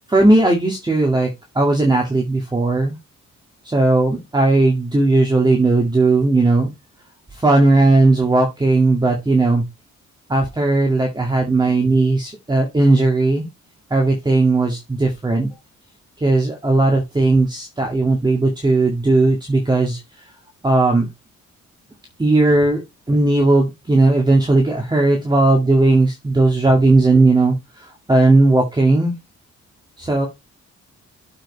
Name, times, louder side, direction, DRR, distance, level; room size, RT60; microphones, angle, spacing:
voice 1, 0.1-1.3 1.6-3.0 3.6-6.7 7.3-9.6 10.3-13.5 13.9-15.5 16.2-20.0 20.6-21.1 22.2-22.8 23.1-27.5 28.1-29.1 30.0-30.3, right 2 dB, 15° right, 2 dB, 2.1 m, -16 dB
7.4 x 5.4 x 4.1 m, 0.21 s
cardioid pair, 135°, 30 cm